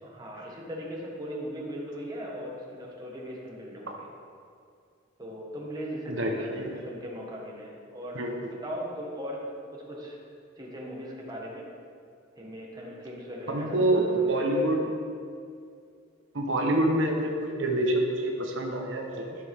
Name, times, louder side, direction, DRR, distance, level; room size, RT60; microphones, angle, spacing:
voice 1, 0.0-4.1 5.2-10.2 10.6-11.7 12.4-14.7, equal, 20° right, -3 dB, 1.7 m, -39 dB
voice 2, 6.1-6.8 8.1-8.5 13.5-14.8 16.3-19.4, right 1 dB, 65° right, 1 dB, 1.1 m, -27 dB
13.0 x 6.6 x 3.7 m, 2.3 s
head